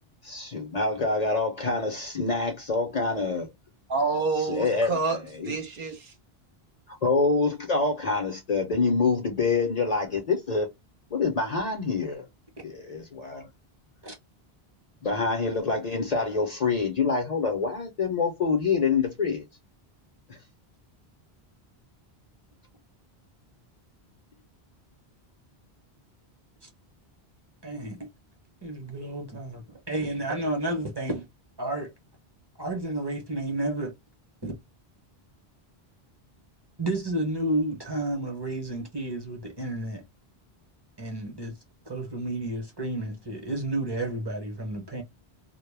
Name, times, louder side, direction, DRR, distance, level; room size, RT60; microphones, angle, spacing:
voice 1, 0.2-3.5 4.4-5.5 7.0-10.7 11.1-12.3 12.6-13.5 15.0-19.4, left 4 dB, 45° left, 0.6 m, -26 dB
voice 2, 3.9-6.1, right 4 dB, 60° right, 0.8 m, -28 dB
voice 3, 27.6-28.1 28.6-31.3 31.6-31.9 32.6-33.9 34.4-34.5 36.8-40.0 41.0-41.5 41.9-45.0, right 1 dB, 25° right, 0.7 m, -31 dB
2.1 x 2.0 x 3.1 m
omnidirectional pair, 1.1 m